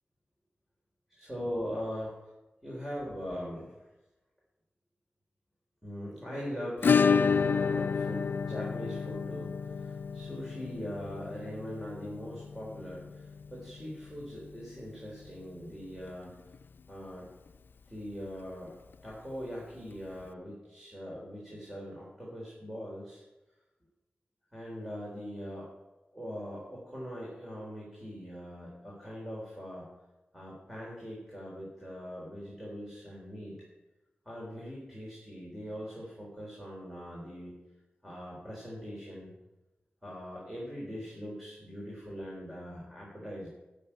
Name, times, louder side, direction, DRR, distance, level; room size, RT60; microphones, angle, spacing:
voice 1, 1.1-2.1 2.6-3.9 5.8-16.4 16.9-17.3 17.9-18.7 19.0-23.2 24.5-25.7 26.1-29.9 30.3-33.6 34.3-37.5 38.0-39.3 40.0-43.5, equal, 5° right, -5 dB, 4.0 m, -41 dB
Acoustic guitar / Strum, 6.8-15.4 15.7-15.8 16.1-16.2 16.5-16.6 18.7-18.8 19.9-20.0, left 6 dB, 80° left, 0.4 m, -30 dB
12.0 x 6.8 x 8.8 m, 1.0 s
wide cardioid pair, 120°, 4 cm